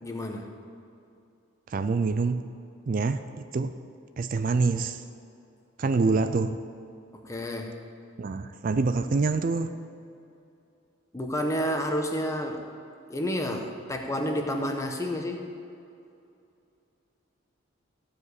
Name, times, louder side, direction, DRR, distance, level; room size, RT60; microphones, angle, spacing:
voice 1, 0.0-0.5 7.2-7.8 11.1-12.7 13.1-15.5, equal, 15° left, 3 dB, 1.0 m, -30 dB
voice 2, 1.7-2.5 2.9-3.2 3.5-3.7 4.2-5.0 5.8-6.6 8.2-9.7, right 4 dB, 45° right, 10 dB, 0.4 m, -25 dB
14.5 x 5.0 x 8.1 m, 2.6 s
head